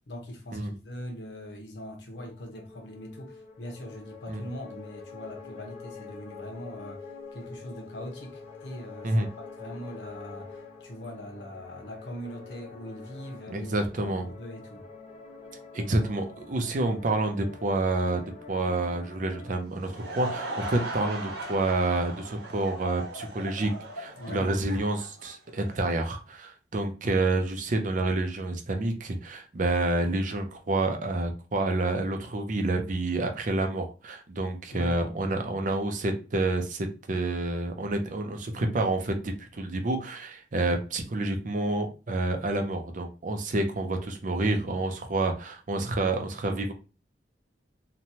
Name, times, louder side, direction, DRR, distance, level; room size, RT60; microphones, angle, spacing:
voice 1, 0.0-7.1 7.3-9.3 9.6-14.9 24.2-24.5 34.7-35.4, equal, 85° left, 0.9 m, -41 dB
sound 1, 2.1-19.6, left 4 dB, 35° left, 0.8 m, -46 dB
voice 2, 13.5-14.3 15.7-18.2 18.5-46.7, right 2 dB, 45° right, 0.5 m, -28 dB
Laughter / Crowd, 19.6-25.9, right 2 dB, 75° right, 1.0 m, -38 dB
3.0 x 2.2 x 2.7 m
head